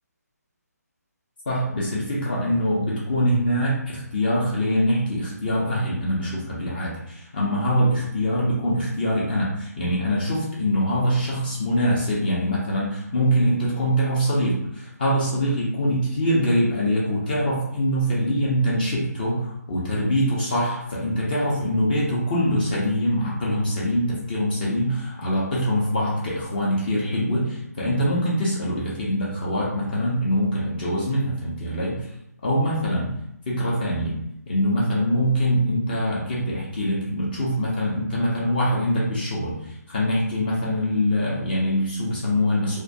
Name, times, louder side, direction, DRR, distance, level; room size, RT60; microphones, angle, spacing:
voice 1, 1.5-32.1 32.4-33.1 33.5-34.2 34.5-42.8, equal, 30° left, -5 dB, 0.6 m, -23 dB
2.2 x 2.2 x 2.6 m, 0.81 s
figure-of-eight pair, 150°, 9 cm